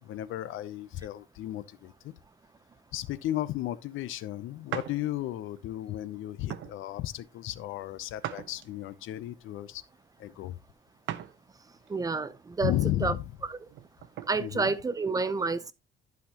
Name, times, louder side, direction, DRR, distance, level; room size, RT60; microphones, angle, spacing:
voice 1, 0.0-2.1 2.9-9.8 10.2-10.6 12.6-13.3 14.4-14.7, left 14 dB, 80° left, 0.7 m, -34 dB
sound 1, 4.7-5.0 5.6-5.8 6.5-6.8 8.2-9.0 11.1-11.4 11.9-12.0 13.6-14.3, right 11 dB, 70° right, 0.9 m, -38 dB
voice 2, 11.9-12.7 13.0-13.1 14.3-15.7, right 4 dB, 20° right, 0.5 m, -29 dB
11.5 x 5.8 x 2.9 m
cardioid pair, 165°, 20 cm